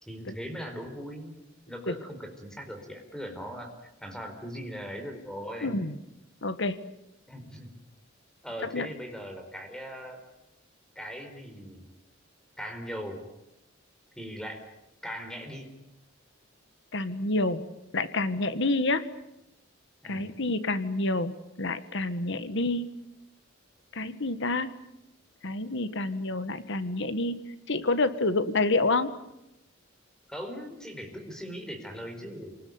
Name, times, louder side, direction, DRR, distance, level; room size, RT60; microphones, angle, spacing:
voice 1, 0.0-1.4 1.7-3.7 4.0-5.7 7.3-7.7 8.4-10.2 10.9-11.8 12.6-13.2 14.2-14.6 15.0-15.7 20.0-20.3 30.3-32.6, equal, 5° left, 5 dB, 4.6 m, -39 dB
voice 2, 5.6-5.9 6.4-6.8 8.7-8.9 16.9-17.6 17.9-19.0 20.0-21.3 21.6-22.9 23.9-24.7 25.4-27.4 27.7-29.2, left 2 dB, 65° left, 12 dB, 1.7 m, -28 dB
28.5 x 20.0 x 9.6 m, 0.89 s
head